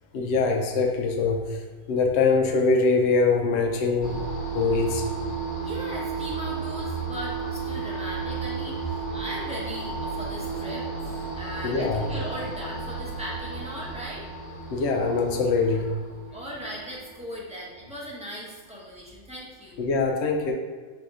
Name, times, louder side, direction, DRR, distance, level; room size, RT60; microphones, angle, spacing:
voice 1, 0.1-1.6 1.9-4.2 4.5-5.1 11.6-12.1 14.7-16.0 19.8-20.5, left 4 dB, 70° left, 2 dB, 0.6 m, -23 dB
sound 1, 4.0-18.2, right 4 dB, 35° left, 1.1 m, -33 dB
voice 2, 5.6-14.3 16.3-19.8, equal, 5° right, -5 dB, 0.6 m, -38 dB
4.1 x 2.6 x 4.7 m, 1.5 s
omnidirectional pair, 1.6 m